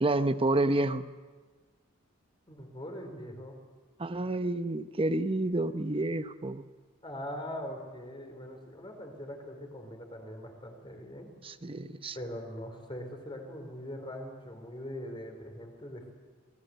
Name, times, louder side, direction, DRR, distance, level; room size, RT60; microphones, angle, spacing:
voice 1, 0.0-1.0 4.0-6.6 11.4-12.2, right 2 dB, 25° right, 11 dB, 0.8 m, -29 dB
voice 2, 2.5-3.6 7.0-11.3 12.1-16.1, equal, 25° left, 4 dB, 4.4 m, -42 dB
28.0 x 20.0 x 8.1 m, 1.4 s
head